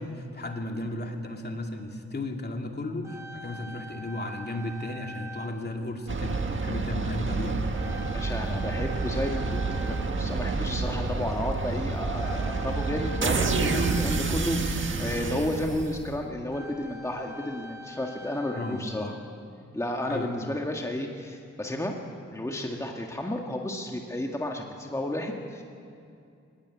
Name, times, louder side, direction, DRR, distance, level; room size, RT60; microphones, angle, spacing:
voice 1, 0.0-7.6 18.5-19.2 20.1-20.6, left 2 dB, 35° left, 2 dB, 2.6 m, -35 dB
sound 1, 3.0-6.4 7.1-7.3 7.7-11.0 12.1-15.2 15.9-16.0 16.3-19.4, left 1 dB, 10° right, 2.4 m, -45 dB
sound 2, 6.1-16.3, right 3 dB, 40° right, 1.8 m, -29 dB
voice 2, 8.1-19.2 19.7-21.9 22.3-25.6, left 1 dB, 10° left, 1 dB, 1.9 m, -32 dB
24.0 x 20.5 x 9.7 m, 2.5 s
wide cardioid pair, 130°, 29 cm